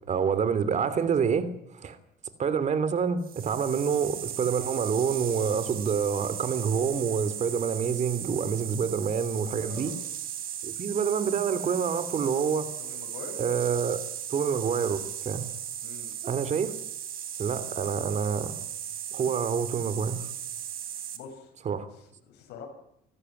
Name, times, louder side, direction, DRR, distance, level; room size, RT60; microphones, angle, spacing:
voice 1, 0.1-1.5 1.7-2.0 2.4-9.9 10.6-12.7 13.4-14.0 14.3-15.5 16.2-16.7 17.4-18.5 19.1-20.3 21.6-21.9, right 6 dB, 45° right, 14 dB, 3.0 m, -27 dB
sound 1, 3.2-21.2, right 10 dB, 60° right, 3.5 m, -37 dB
voice 2, 9.6-10.0 12.8-13.4 15.8-16.1 21.1-21.5 21.9-22.7, left 6 dB, 80° left, 3 dB, 7.6 m, -45 dB
26.0 x 14.5 x 9.8 m, 0.76 s
cardioid pair, 110°, 17 cm